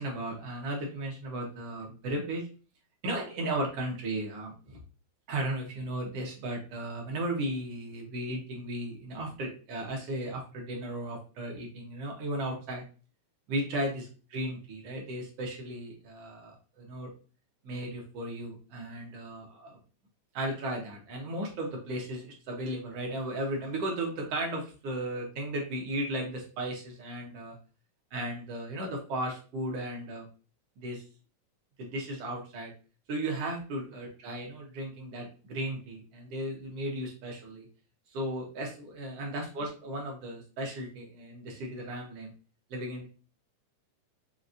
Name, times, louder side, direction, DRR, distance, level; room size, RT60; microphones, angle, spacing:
voice 1, 0.0-2.4 3.0-4.8 5.3-12.8 13.5-14.0 14.3-17.1 17.6-19.8 20.3-27.6 28.1-30.3 30.8-31.0 31.8-32.7 33.1-37.7 38.1-42.3 42.7-43.1, right 1 dB, 65° right, 0 dB, 1.7 m, -35 dB
5.3 x 2.8 x 2.5 m, 0.36 s
omnidirectional pair, 3.6 m